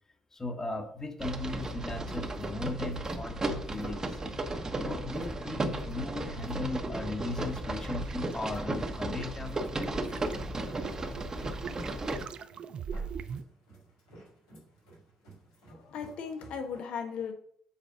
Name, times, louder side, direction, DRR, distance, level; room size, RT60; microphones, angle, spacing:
voice 1, 0.3-4.2 4.8-10.0, left 2 dB, 20° left, 6 dB, 1.5 m, -37 dB
sound 1, 1.2-12.3, right 2 dB, 25° right, 1.2 m, -35 dB
sound 2, 1.9-16.8, right 1 dB, 80° left, 3.2 m, -52 dB
sound 3, 7.4-13.4, right 6 dB, 45° right, 0.5 m, -42 dB
voice 2, 15.7-17.3, left 6 dB, 60° left, 5 dB, 1.3 m, -37 dB
7.3 x 4.9 x 5.5 m, 0.63 s
figure-of-eight pair, 50°, 2 cm